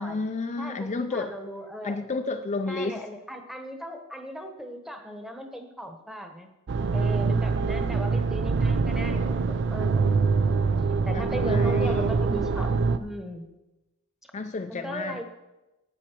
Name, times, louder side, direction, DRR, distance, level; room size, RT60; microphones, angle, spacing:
voice 1, 0.0-1.3 1.8-3.0 8.1-8.2 11.1-12.1 14.3-15.2, left 3 dB, 30° left, 6 dB, 0.4 m, -31 dB
voice 2, 0.6-2.2 2.7-6.5 6.9-13.5 14.7-15.2, equal, ahead, 5 dB, 1.1 m, -38 dB
sound 1, 6.7-13.0, right 4 dB, 55° right, 0.5 m, -24 dB
11.5 x 8.9 x 4.5 m, 1.0 s
head